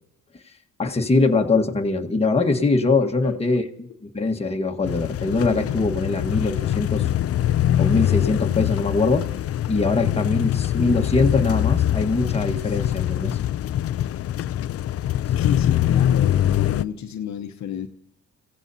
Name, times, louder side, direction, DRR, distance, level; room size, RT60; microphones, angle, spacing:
voice 1, 0.8-7.1 7.8-9.3 9.7-13.4, left 3 dB, 20° left, 3 dB, 1.5 m, -22 dB
voice 2, 3.0-3.4 15.4-17.9, left 9 dB, 65° left, 5 dB, 1.0 m, -31 dB
sound 1, 4.8-16.8, left 11 dB, 50° left, 0.5 m, -23 dB
29.5 x 16.0 x 2.8 m, 0.78 s
cardioid pair, 90°, 30 cm